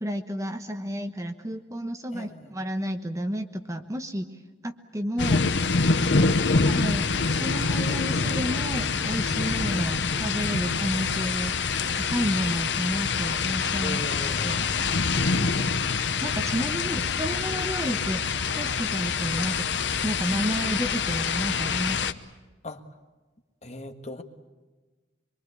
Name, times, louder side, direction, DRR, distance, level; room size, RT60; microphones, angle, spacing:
voice 1, 0.0-4.3 4.6-5.5 6.7-11.7 11.9-14.0 14.4-19.7 20.0-22.1, equal, 15° right, 7 dB, 1.1 m, -31 dB
voice 2, 2.1-2.5 6.1-6.4 9.8-10.0 13.8-14.8 22.6-22.8 23.6-24.2, left 1 dB, 40° left, 6 dB, 1.8 m, -39 dB
sound 1, 5.2-22.1, left 4 dB, 70° left, 1.0 m, -26 dB
25.0 x 23.0 x 8.4 m, 1.3 s
head